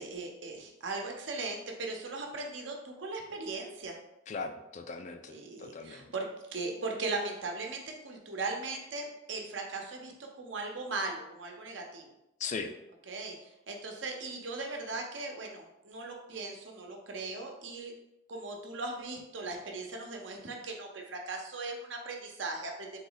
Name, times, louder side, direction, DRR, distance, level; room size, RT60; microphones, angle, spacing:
voice 1, 0.0-4.0 5.3-10.1 10.4-12.1 13.1-13.4 13.7-17.9 18.3-22.9, right 3 dB, 75° right, 2 dB, 0.8 m, -38 dB
voice 2, 4.3-6.1 12.4-12.7, left 4 dB, 40° left, 7 dB, 0.3 m, -39 dB
3.8 x 3.0 x 3.9 m, 0.87 s
head